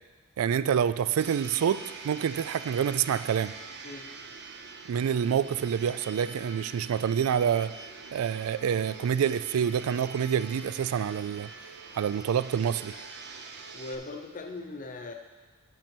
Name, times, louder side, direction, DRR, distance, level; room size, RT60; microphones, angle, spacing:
voice 1, 0.4-3.5 4.9-7.7 8.1-11.5 11.9-12.9, right 8 dB, 85° right, 15 dB, 0.3 m, -27 dB
Domestic sounds home sounds, 1.2-13.9, right 4 dB, 55° right, 0.7 m, -44 dB
voice 2, 13.7-15.1, left 2 dB, 40° left, 5 dB, 0.7 m, -39 dB
8.9 x 6.7 x 4.4 m, 1.3 s
head